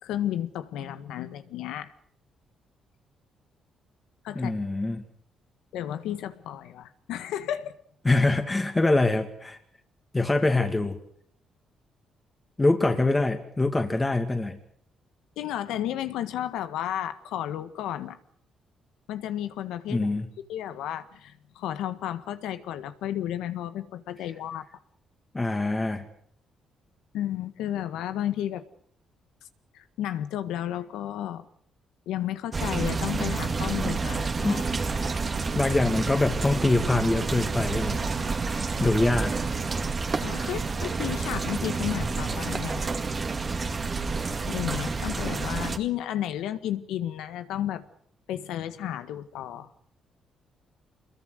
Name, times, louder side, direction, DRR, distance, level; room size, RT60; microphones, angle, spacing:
voice 1, 0.0-1.9 4.2-4.5 5.7-7.7 15.4-18.2 19.1-20.1 20.5-24.6 27.1-28.7 29.7-31.4 32.0-34.7 38.5-38.7 40.2-42.9 44.4-47.8 48.3-49.7, left 11 dB, 90° left, 11 dB, 1.7 m, -32 dB
voice 2, 4.3-5.0 8.0-9.6 10.1-11.0 12.6-14.6 19.9-20.3 25.3-26.0 34.4-35.0 35.5-38.0 38.5-39.3, left 2 dB, 20° left, 5 dB, 2.5 m, -24 dB
sound 1, 32.5-45.8, right 4 dB, 35° right, 2.1 m, -29 dB
26.0 x 22.0 x 6.6 m, 0.63 s
cardioid pair, 90°, 0 cm